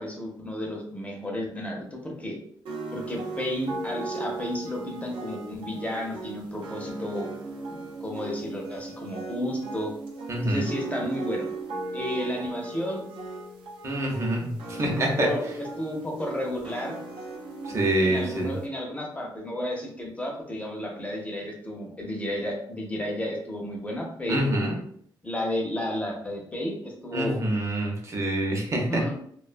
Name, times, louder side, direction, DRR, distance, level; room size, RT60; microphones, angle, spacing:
voice 1, 0.0-2.4 2.9-7.3 7.7-9.9 10.4-11.5 11.9-13.0 14.7-14.8 15.1-16.9 18.0-24.7 25.2-27.4 28.9-29.1, left 1 dB, 15° left, 0 dB, 0.5 m, -32 dB
sound 1, 2.7-18.7, right 3 dB, 90° right, 0.6 m, -37 dB
voice 2, 10.3-10.7 13.8-15.3 17.6-18.5 24.3-24.8 27.1-29.0, right 1 dB, 35° right, 1 dB, 0.6 m, -26 dB
2.4 x 2.2 x 2.4 m, 0.65 s
cardioid pair, 125°, 8 cm